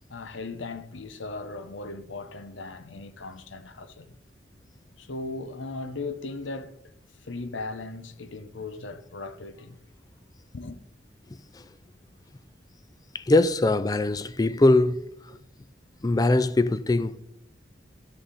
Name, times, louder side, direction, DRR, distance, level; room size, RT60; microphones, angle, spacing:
voice 1, 0.1-4.2 5.0-6.7 7.2-9.8 10.5-10.8, left 3 dB, 85° left, 0.8 m, -37 dB
voice 2, 13.1-15.1 16.0-17.2, left 2 dB, 20° left, 0.3 m, -22 dB
12.5 x 6.6 x 4.1 m
head